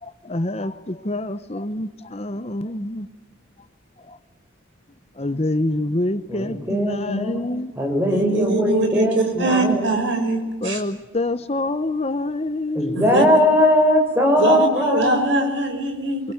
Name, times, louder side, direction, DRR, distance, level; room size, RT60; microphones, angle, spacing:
voice 1, 0.0-3.1 4.0-4.2 5.1-7.7 10.6-13.1 16.2-16.3, left 2 dB, 30° left, 0.9 m, -26 dB
voice 2, 6.3-7.4 7.8-10.0 12.7-15.5, equal, 10° right, 6.1 m, -20 dB
voice 3, 8.1-10.8 12.9-13.2 14.4-16.2, right 2 dB, 65° right, 5.8 m, -22 dB
26.5 x 23.0 x 9.6 m
head